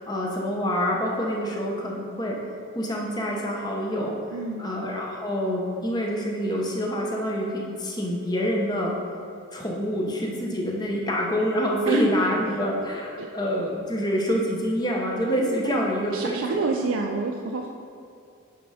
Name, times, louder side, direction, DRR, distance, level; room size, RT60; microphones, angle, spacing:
voice 1, 0.0-2.4 2.7-4.1 4.6-8.9 9.5-16.7, equal, 20° left, -2 dB, 0.9 m, -26 dB
voice 2, 4.3-4.7 11.9-12.0 13.2-13.3 15.6-17.7, right 4 dB, 80° right, 1 dB, 0.5 m, -28 dB
9.6 x 3.6 x 5.0 m, 2.4 s
head